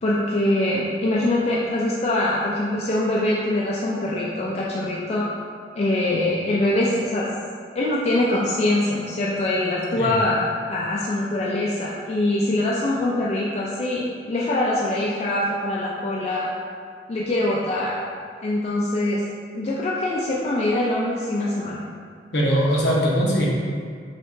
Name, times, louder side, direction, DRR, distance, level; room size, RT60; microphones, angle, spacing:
voice 1, 0.0-5.3 5.8-7.3 7.7-16.5 17.1-17.9 18.4-19.2 19.5-21.8, left 1 dB, 35° left, -5 dB, 0.3 m, -23 dB
voice 2, 22.3-23.5, equal, 65° left, -4 dB, 0.7 m, -20 dB
4.3 x 2.9 x 2.6 m, 2.1 s
head